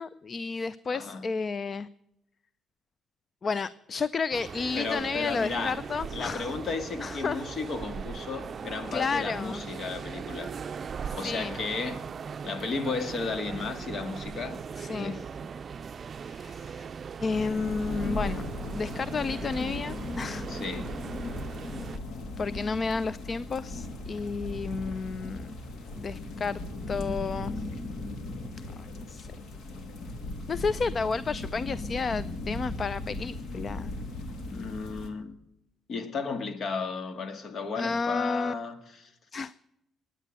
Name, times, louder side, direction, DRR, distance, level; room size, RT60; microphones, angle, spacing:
voice 1, 0.0-1.9 3.4-6.5 7.0-7.4 8.9-9.6 11.1-11.6 14.8-15.2 16.2-16.9 17.2-18.5 18.7-20.5 22.4-25.6 26.0-26.6 26.9-27.5 28.8-29.3 30.5-33.9 37.8-38.5 39.3-39.5, left 4 dB, 40° left, 0.5 m, -31 dB
voice 2, 0.9-1.2 4.8-5.8 6.1-10.6 11.1-12.0 12.4-14.6 14.9-15.5 20.5-20.9 34.5-35.4 35.9-39.1, left 4 dB, 55° left, 1.9 m, -34 dB
sound 1, 4.3-22.0, right 6 dB, 45° right, 0.5 m, -39 dB
sound 2, 17.3-35.1, left 2 dB, 70° left, 2.5 m, -37 dB
21.0 x 9.1 x 7.6 m
cardioid pair, 90°, 0 cm